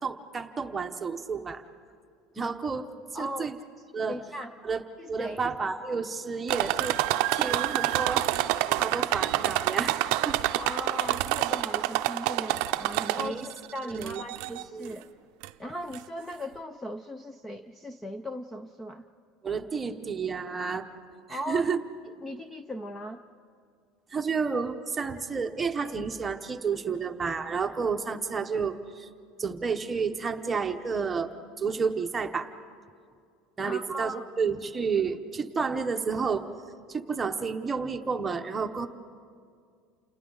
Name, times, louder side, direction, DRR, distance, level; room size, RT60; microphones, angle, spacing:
voice 1, 0.0-1.6 2.3-2.9 3.1-3.6 3.9-4.2 4.6-4.8 5.1-7.0 7.3-8.3 8.8-10.4 13.2-13.5 13.8-14.2 14.5-14.9 19.4-20.9 21.3-21.8 24.1-29.1 29.4-31.3 31.6-32.5 33.6-36.5 36.9-38.9, right 5 dB, 15° right, 6 dB, 0.9 m, -31 dB
voice 2, 3.1-3.5 4.1-4.5 5.0-5.4 10.5-15.1 15.6-19.0 21.3-21.8 22.0-23.2 33.6-34.2, equal, 10° left, 9 dB, 0.5 m, -38 dB
sound 1, 6.5-13.5 14.0-14.6 15.4-15.5 15.9-16.0, right 16 dB, 65° right, 0.6 m, -27 dB
29.5 x 28.5 x 3.9 m, 2.2 s
cardioid pair, 165°, 0 cm